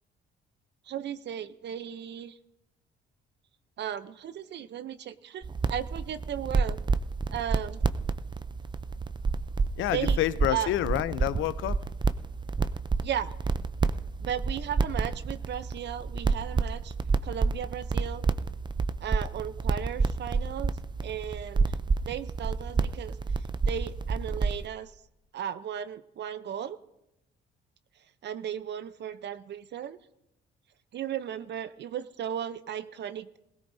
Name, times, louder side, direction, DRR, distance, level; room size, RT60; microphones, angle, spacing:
voice 1, 0.9-2.4 3.8-6.8 7.3-7.8 9.9-10.2 10.5-10.7 13.0-13.3 14.2-16.9 17.2-18.2 19.0-20.7 21.0-21.7 22.0-24.9 25.3-26.8 28.2-30.0 30.9-33.4, right 9 dB, 60° right, 0.7 m, -35 dB
sound 1, 5.4-24.7, right 4 dB, 25° right, 0.5 m, -29 dB
voice 2, 9.8-11.8, left 13 dB, 80° left, 0.6 m, -28 dB
22.0 x 16.5 x 2.7 m
cardioid pair, 90°, 20 cm